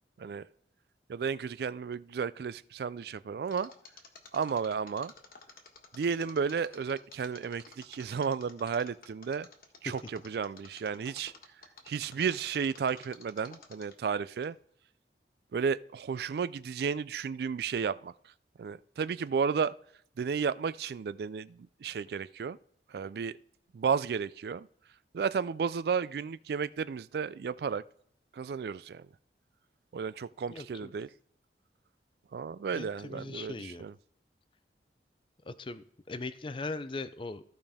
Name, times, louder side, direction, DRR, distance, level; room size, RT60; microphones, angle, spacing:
voice 1, 1.1-3.7 4.3-5.1 5.9-9.5 9.8-11.3 11.9-14.6 15.5-18.1 18.6-19.7 20.2-22.6 22.9-23.4 23.7-24.7 25.1-27.8 28.3-29.0 29.9-31.1 32.3-33.9, right 6 dB, 60° right, 0.3 m, -33 dB
Mechanisms, 3.5-14.1 14.4-14.5, left 4 dB, 50° left, 1.4 m, -52 dB
voice 2, 30.5-30.9 32.7-33.9 35.4-37.4, left 3 dB, 30° left, 0.5 m, -40 dB
15.0 x 5.2 x 3.5 m
head